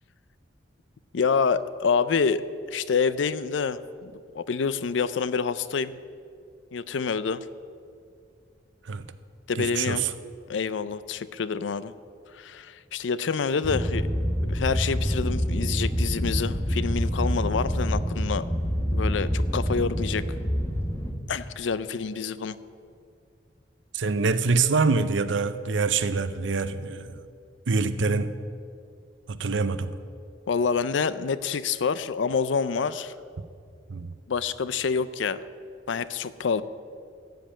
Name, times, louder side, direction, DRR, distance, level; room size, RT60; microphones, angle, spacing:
voice 1, 1.1-5.9 6.7-7.4 9.5-10.1 10.5-11.9 12.3-14.1 14.5-18.5 18.9-20.2 21.3-22.6 30.5-33.1 34.3-35.4 35.9-36.6, left 5 dB, 80° left, 15 dB, 0.5 m, -27 dB
voice 2, 9.6-10.1 23.9-27.2 27.7-28.3 29.3-29.9 33.9-34.1, right 4 dB, 85° right, 12 dB, 0.6 m, -25 dB
sound 1, 13.6-21.1, equal, 15° left, 1.2 m, -27 dB
15.0 x 5.2 x 8.8 m, 2.3 s
head